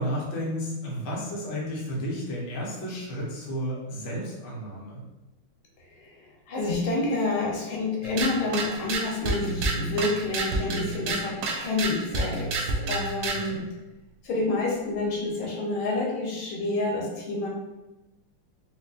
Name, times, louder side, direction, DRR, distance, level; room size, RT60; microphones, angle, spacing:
voice 1, 0.0-5.0 13.3-13.6, equal, 50° left, -5 dB, 0.9 m, -32 dB
voice 2, 6.5-13.6 14.2-17.5, left 2 dB, 75° left, -2 dB, 1.7 m, -28 dB
sound 1, 8.0-13.5, right 3 dB, 75° right, 1.0 m, -29 dB
4.5 x 2.5 x 2.5 m, 1.0 s
omnidirectional pair, 2.4 m